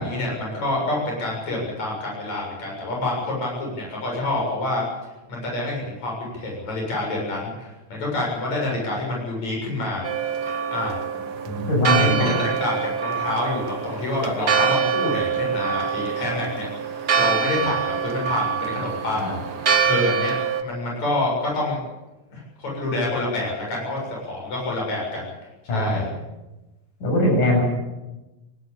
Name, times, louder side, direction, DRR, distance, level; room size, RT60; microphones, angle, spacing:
voice 1, 0.0-4.8 5.3-11.0 11.9-16.7 17.2-19.4 19.8-20.4 20.6-21.8 22.3-25.3 25.6-26.1, left 2 dB, 55° left, -2 dB, 8.5 m, -27 dB
Church bell, 10.0-20.6, right 7 dB, 50° right, 1.3 m, -25 dB
voice 2, 11.5-12.3 19.1-19.4 25.7-26.0 27.0-27.6, left 1 dB, 70° left, -2 dB, 9.5 m, -21 dB
19.5 x 18.5 x 8.8 m, 1.1 s
omnidirectional pair, 3.8 m